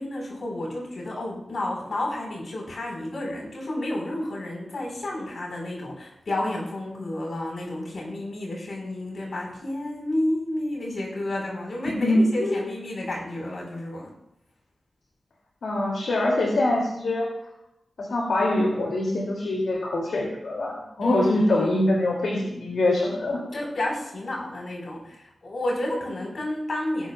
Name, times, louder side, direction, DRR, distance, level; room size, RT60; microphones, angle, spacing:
voice 1, 0.0-14.1 21.0-21.9 23.1-23.2 23.5-27.1, left 1 dB, 60° left, -1 dB, 4.6 m, -31 dB
voice 2, 11.9-12.7 15.6-17.3 18.0-23.4, left 1 dB, 85° left, -2 dB, 2.7 m, -24 dB
19.0 x 11.5 x 2.4 m, 0.85 s
wide cardioid pair, 125°, 0 cm